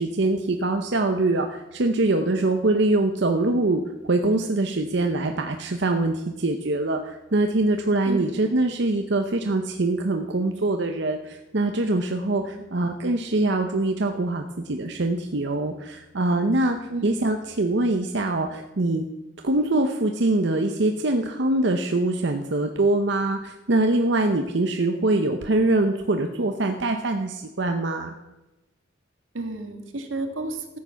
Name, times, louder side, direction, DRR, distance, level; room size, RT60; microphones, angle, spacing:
voice 1, 0.0-16.8 17.0-19.0 19.4-28.2, right 2 dB, 60° right, 5 dB, 0.8 m, -23 dB
voice 2, 8.1-8.4 12.4-12.6 16.9-17.2 29.3-30.8, right 2 dB, 85° right, 5 dB, 1.8 m, -32 dB
13.5 x 8.7 x 5.8 m, 1.0 s
head